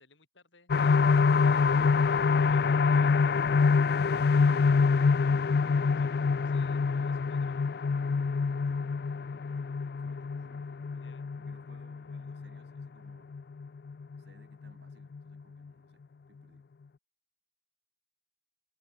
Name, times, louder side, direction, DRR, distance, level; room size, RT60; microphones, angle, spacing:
voice 1, 0.0-3.3 6.0-6.2 6.4-7.7 10.9-11.3, left 3 dB, 80° left, 6.7 m, -61 dB
sound 1, 0.7-14.2 14.6-14.7 15.1-15.2, left 5 dB, 55° left, 0.4 m, -26 dB
voice 2, 3.9-4.8 8.3-13.4 14.1-16.7, right 1 dB, 65° right, 4.2 m, -63 dB
head